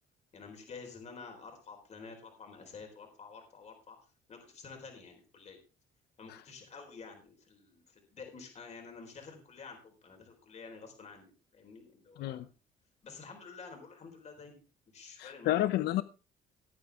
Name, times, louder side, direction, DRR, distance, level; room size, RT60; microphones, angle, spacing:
voice 1, 0.3-4.0 4.3-5.6 6.2-12.4 13.0-14.6 14.9-15.7, left 5 dB, 40° left, 4.1 m, -49 dB
voice 2, 15.2-16.0, left 14 dB, 75° left, 0.7 m, -30 dB
17.5 x 8.8 x 3.5 m
cardioid pair, 110°, 17 cm